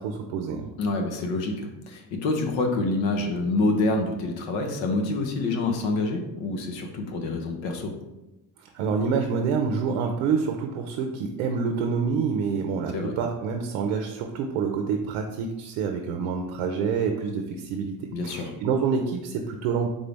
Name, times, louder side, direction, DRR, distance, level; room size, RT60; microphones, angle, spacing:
voice 1, 0.0-0.7 8.7-19.9, right 5 dB, 90° right, 4 dB, 0.6 m, -27 dB
voice 2, 0.8-7.9 12.9-13.1 18.1-18.5, left 2 dB, 75° left, 3 dB, 1.0 m, -27 dB
3.9 x 3.7 x 3.4 m, 0.99 s
supercardioid pair, 90°, 44 cm